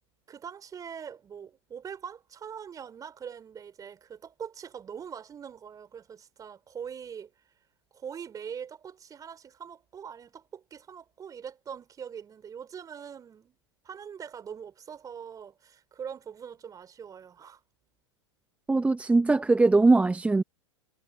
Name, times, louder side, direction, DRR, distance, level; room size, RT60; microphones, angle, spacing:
voice 1, 0.3-7.3 7.9-13.6 13.8-17.6, right 7 dB, 25° right, 3.7 m, -42 dB
voice 2, 18.7-20.4, right 3 dB, 10° right, 0.9 m, -21 dB
figure-of-eight pair, 90°, 15 cm